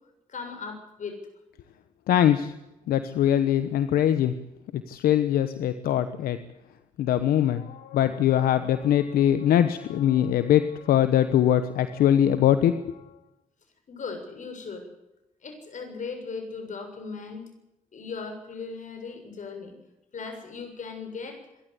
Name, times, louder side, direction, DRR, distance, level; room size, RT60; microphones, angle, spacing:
voice 1, 0.3-1.2 8.0-8.1 13.9-14.9 15.4-17.4 17.9-19.8 20.1-21.4, left 4 dB, 60° left, 5 dB, 7.1 m, -37 dB
voice 2, 2.1-2.5 2.9-4.3 4.7-6.4 7.0-13.1, left 10 dB, 85° left, 11 dB, 1.1 m, -22 dB
26.5 x 12.5 x 8.3 m, 0.92 s
supercardioid pair, 60°, 15 cm